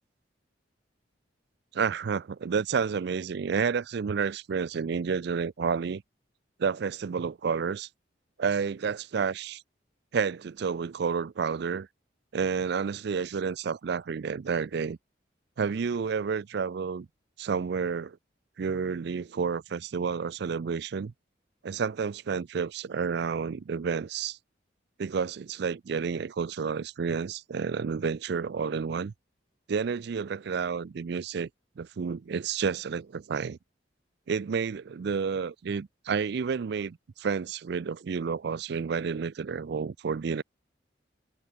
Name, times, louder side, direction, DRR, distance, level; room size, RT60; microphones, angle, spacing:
voice 1, 1.7-6.0 6.6-7.9 8.4-9.6 10.1-11.9 12.3-15.0 15.6-17.1 17.4-18.2 18.6-21.1 21.6-24.4 25.0-29.1 29.7-31.5 31.8-33.6 34.3-40.4, right 6 dB, 60° right, 0.4 m, -30 dB
head